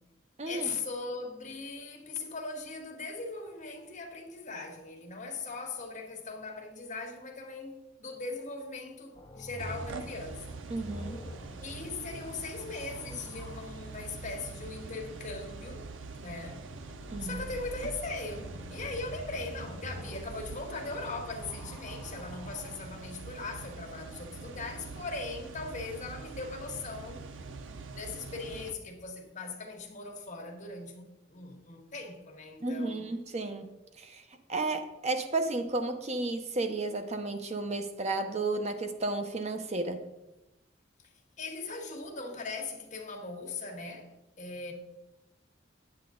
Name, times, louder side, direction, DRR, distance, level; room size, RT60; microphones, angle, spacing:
voice 1, 0.4-10.6 11.6-16.6 17.2-27.2 27.9-33.1 41.4-44.7, left 3 dB, 40° left, 1.7 m, -39 dB
sound 1, 9.2-13.8 16.8-22.9 23.8-24.5, left 1 dB, 25° left, 0.7 m, -47 dB
sound 2, 9.6-28.7, right 3 dB, 80° right, 0.7 m, -44 dB
voice 2, 10.7-11.2 17.1-17.4 32.6-34.2 34.5-40.0, right 2 dB, 35° right, 0.7 m, -33 dB
9.7 x 8.7 x 3.8 m
head